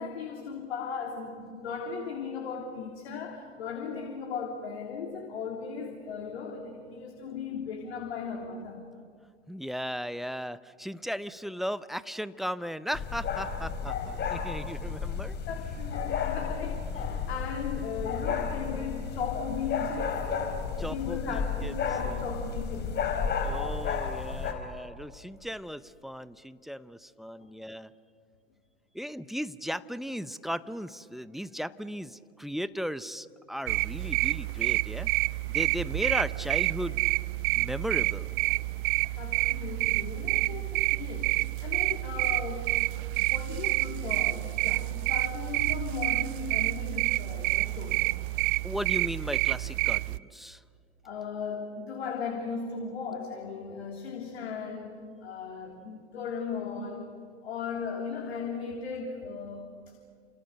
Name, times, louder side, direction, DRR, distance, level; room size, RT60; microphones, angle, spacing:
voice 1, 0.0-8.9 15.5-20.2 20.8-23.0 27.4-27.5 38.5-42.7 43.2-48.1 51.0-57.2 57.4-59.9, left 5 dB, 65° left, 1 dB, 3.6 m, -37 dB
voice 2, 9.5-15.4 20.8-21.7 22.0-22.2 23.4-27.9 28.9-35.1 35.5-37.0 37.5-38.3 48.6-50.6, equal, ahead, 15 dB, 0.8 m, -36 dB
sound 1, 12.9-24.5, left 6 dB, 30° left, 4.4 m, -32 dB
sound 2, 33.7-50.2, right 22 dB, 50° right, 0.7 m, -28 dB
30.0 x 27.5 x 6.7 m, 2.2 s
figure-of-eight pair, 90°, 33 cm